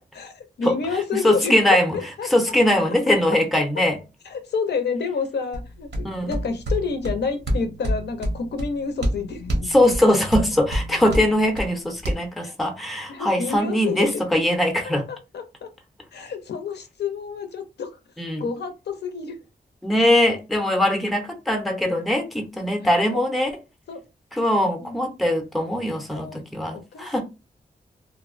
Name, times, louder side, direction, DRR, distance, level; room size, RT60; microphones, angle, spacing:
voice 1, 0.1-2.3 3.8-3.9 4.3-9.9 12.4-12.5 13.1-14.2 15.1-15.7 16.1-17.9 18.4-19.4 20.5-20.6 22.8-23.3 23.9-24.0 24.8-25.0 26.1-26.4 26.7-27.1, left 5 dB, 75° left, 0.5 m, -29 dB
voice 2, 1.1-2.0 2.3-4.0 6.0-6.4 9.7-15.1 18.2-18.4 19.8-23.5 24.3-27.2, left 1 dB, ahead, 0.5 m, -21 dB
sound 1, 5.5-12.1, equal, 85° right, 0.7 m, -28 dB
2.5 x 2.0 x 2.4 m
wide cardioid pair, 135°, 17 cm